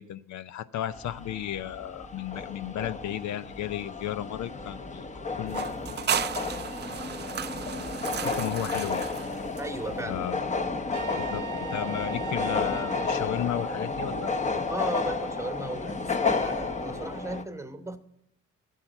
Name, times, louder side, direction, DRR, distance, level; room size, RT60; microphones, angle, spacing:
voice 1, 0.0-6.1 8.1-9.1 10.0-10.4 11.1-11.5 11.7-14.3, left 11 dB, 70° left, 14 dB, 0.5 m, -34 dB
sound 1, 0.9-17.4, left 4 dB, 25° left, 1.0 m, -32 dB
sound 2, 5.5-10.0, right 9 dB, 35° right, 0.5 m, -34 dB
voice 2, 9.6-10.2 10.8-10.9 14.7-18.0, right 2 dB, 10° right, 9 dB, 1.0 m, -36 dB
Trumpet, 10.9-13.2, right 12 dB, 75° right, 0.9 m, -40 dB
12.5 x 7.3 x 9.0 m, 0.80 s
cardioid pair, 90°, 30 cm